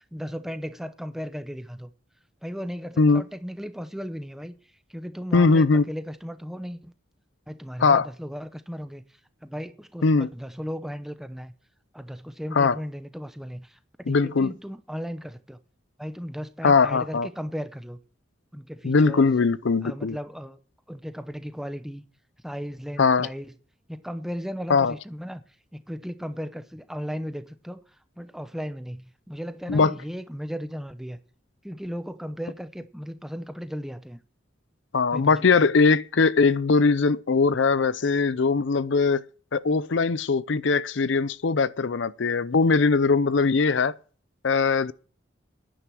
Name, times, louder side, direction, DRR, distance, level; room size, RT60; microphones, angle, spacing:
voice 1, 0.1-1.9 2.4-4.5 4.9-6.9 7.5-9.0 9.4-11.5 11.9-13.8 14.1-15.6 16.0-18.0 18.5-19.3 19.8-20.6 20.9-22.0 22.4-23.5 23.9-25.4 25.7-27.8 28.2-31.2 31.6-34.2 35.1-35.5, equal, ahead, 0.8 m, -36 dB
voice 2, 5.3-5.8 7.8-8.1 10.0-10.3 12.5-12.8 14.1-14.5 16.6-17.3 18.8-20.2 23.0-23.3 24.7-24.9 29.7-29.9 34.9-39.2 39.5-43.9 44.4-44.9, left 4 dB, 70° left, 0.6 m, -21 dB
11.0 x 10.0 x 6.2 m
head